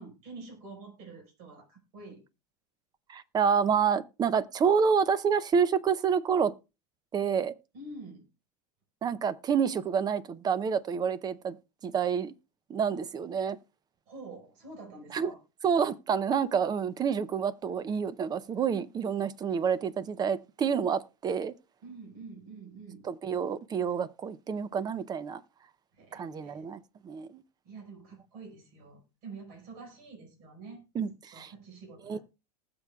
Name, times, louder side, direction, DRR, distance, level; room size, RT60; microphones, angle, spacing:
voice 1, 0.0-2.2 7.7-8.3 14.1-15.4 21.8-23.0 25.9-26.7 27.6-32.2, right 3 dB, 55° right, 5.1 m, -47 dB
voice 2, 3.1-6.5 7.1-7.5 9.0-11.6 11.8-12.3 12.7-13.6 15.1-15.3 15.6-21.5 23.0-25.4 26.1-27.4 30.9-31.1 31.3-31.5 32.1-32.2, right 6 dB, 20° right, 0.6 m, -28 dB
19.5 x 6.9 x 2.3 m
supercardioid pair, 135°, 20 cm